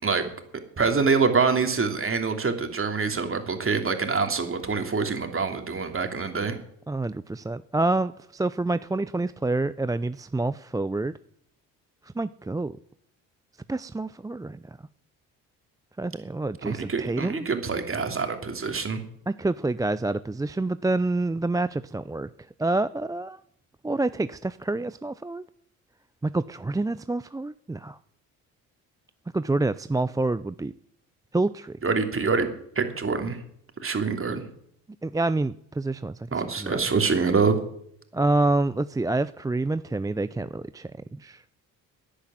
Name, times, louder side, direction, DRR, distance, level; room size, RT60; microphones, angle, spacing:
voice 1, 0.8-6.6 16.6-19.0 31.8-32.5 32.7-33.4 33.8-34.4 36.3-37.6, right 4 dB, 35° right, 6 dB, 3.0 m, -25 dB
voice 2, 6.9-11.1 12.2-12.8 13.7-14.6 16.0-17.4 19.3-22.3 22.6-23.4 23.8-25.4 26.2-28.0 29.3-30.7 31.3-31.8 35.0-36.2 36.6-36.8 38.1-41.4, right 2 dB, 10° right, 14 dB, 0.5 m, -27 dB
11.5 x 10.0 x 9.2 m, 0.69 s
hypercardioid pair, 55°, 39 cm